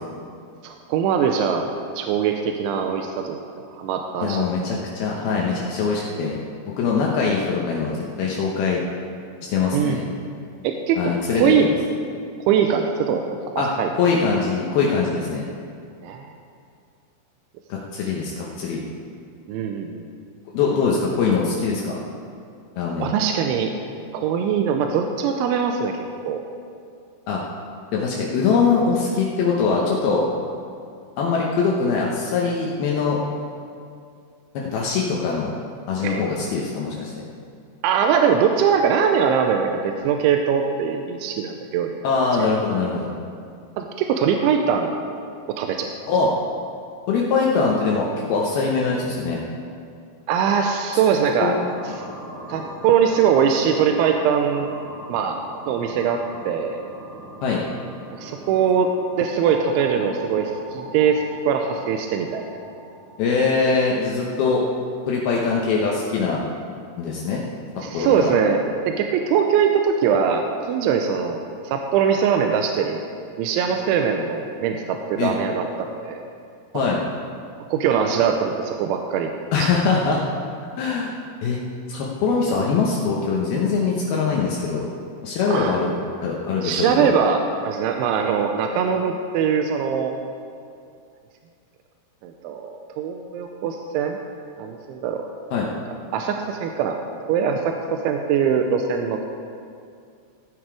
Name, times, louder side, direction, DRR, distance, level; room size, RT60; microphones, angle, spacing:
voice 1, 0.6-1.7 2.0-4.4 9.7-10.0 10.6-11.0 11.3-11.7 12.5-13.4 13.8-13.9 16.0-16.3 19.5-20.0 23.0-23.7 24.1-26.4 36.0-36.2 37.8-42.0 42.3-42.5 43.8-44.9 45.5-45.9 50.3-51.6 52.5-54.7 55.1-55.4 55.7-56.2 56.5-56.8 58.2-58.9 59.2-62.4 67.8-68.6 68.9-71.4 71.6-73.0 73.4-76.3 77.7-79.3 79.6-79.7 85.5-85.8 86.6-90.1 92.2-94.2 94.6-95.3 96.1-97.0 97.3-99.2, right 7 dB, 85° right, 4 dB, 2.8 m, -22 dB
voice 2, 4.2-6.4 6.6-8.8 9.4-10.0 11.0-11.7 13.6-13.7 14.0-15.4 17.7-18.8 20.5-22.0 22.8-23.1 27.3-27.4 27.9-30.2 31.2-33.2 34.5-35.5 35.9-37.1 42.0-43.1 46.1-46.3 47.1-49.4 51.4-52.0 57.4-57.6 63.2-64.6 65.1-66.5 67.0-67.4 67.9-68.3 75.2-75.3 76.7-77.0 79.5-80.2 80.8-81.1 81.4-81.6 81.9-84.8 85.2-85.9 86.2-87.1 95.5-95.7, left 5 dB, 85° left, -3 dB, 2.1 m, -22 dB
sound 1, 51.5-65.5, right 2 dB, 60° right, 1.3 m, -41 dB
16.5 x 9.1 x 4.8 m, 2.4 s
omnidirectional pair, 5.9 m